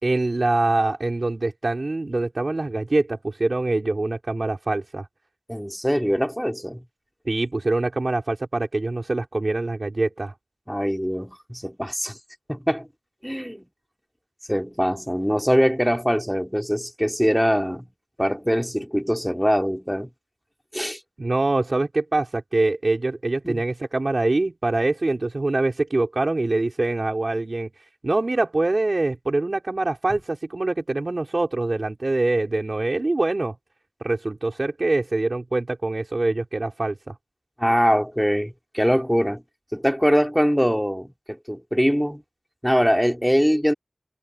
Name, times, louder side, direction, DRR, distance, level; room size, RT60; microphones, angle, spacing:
voice 1, 0.0-5.1 7.3-10.3 21.2-27.7 28.0-33.5 34.0-37.1, right 2 dB, 70° right, 4.1 m, -24 dB
voice 2, 5.5-6.8 10.7-12.2 12.5-12.9 13.2-13.7 14.5-17.9 18.2-20.1 20.7-21.0 23.4-23.6 37.6-39.4 39.7-42.2 42.6-43.7, equal, ahead, 2.9 m, -22 dB
wide cardioid pair, 50°, 0 cm